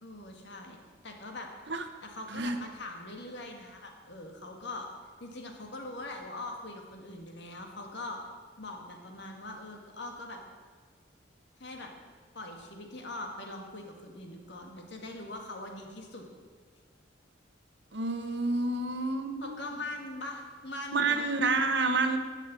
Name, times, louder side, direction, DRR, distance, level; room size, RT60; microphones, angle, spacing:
voice 1, 0.0-1.5 2.0-4.9 5.2-8.2 8.6-10.4 11.6-11.9 12.3-16.2 19.4-21.3, left 2 dB, 60° left, 2 dB, 1.9 m, -42 dB
voice 2, 17.9-19.5 20.9-22.2, right 3 dB, 65° right, 7 dB, 1.1 m, -29 dB
12.0 x 6.7 x 8.3 m, 1.6 s
head